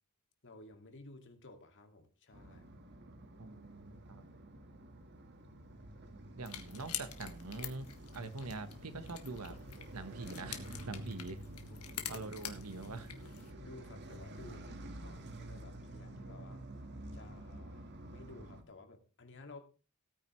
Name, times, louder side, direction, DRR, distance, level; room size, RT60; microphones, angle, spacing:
voice 1, 0.4-2.7 11.7-11.9 13.6-16.7 17.1-19.6, left 2 dB, 55° left, 6 dB, 2.2 m, -54 dB
sound 1, 2.3-18.6, right 1 dB, 50° right, 1.6 m, -49 dB
voice 2, 3.4-4.2 6.3-9.5 9.9-11.4 12.1-13.1, right 3 dB, 90° right, 11 dB, 1.2 m, -44 dB
sound 2, 6.4-13.5, left 10 dB, 80° left, 1.7 m, -47 dB
17.0 x 9.3 x 3.2 m, 0.33 s
head